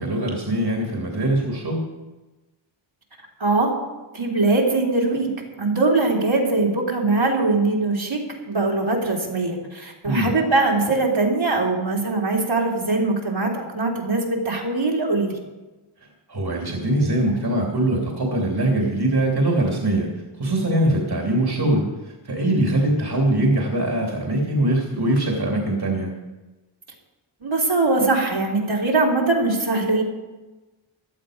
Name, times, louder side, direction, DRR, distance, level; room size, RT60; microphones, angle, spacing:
voice 1, 0.0-1.8 10.0-10.4 16.3-20.1 20.4-26.1, right 1 dB, 50° right, -1 dB, 3.0 m, -22 dB
voice 2, 3.4-3.8 4.1-5.3 5.6-8.2 8.5-15.4 27.4-30.0, right 3 dB, 65° right, -3 dB, 3.5 m, -21 dB
17.0 x 11.5 x 5.1 m, 1.1 s
wide cardioid pair, 65°, 50 cm